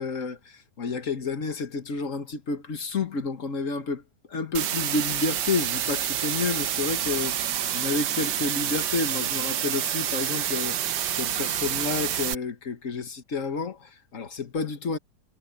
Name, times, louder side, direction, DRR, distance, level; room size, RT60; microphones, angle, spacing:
voice 1, 0.0-4.0 4.3-15.0, left 4 dB, 50° left, 1.8 m, -30 dB
sound 1, 4.5-12.3, right 10 dB, 85° right, 1.5 m, -28 dB
omnidirectional pair, 1.8 m